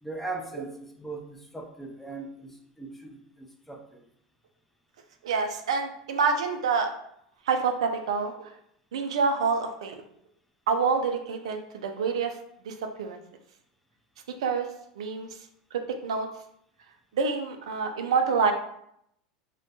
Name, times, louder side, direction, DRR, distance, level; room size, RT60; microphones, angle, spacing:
voice 1, 0.0-4.0, right 3 dB, 5° left, 2 dB, 0.4 m, -39 dB
voice 2, 5.2-6.9 7.5-8.5 8.9-10.0 10.7-12.4 12.6-13.2 14.4-14.7 15.0-15.3 16.0-16.3 17.1-18.5, right 5 dB, 80° right, 5 dB, 0.3 m, -27 dB
2.2 x 2.1 x 2.8 m, 0.72 s
hypercardioid pair, 100°, 3 cm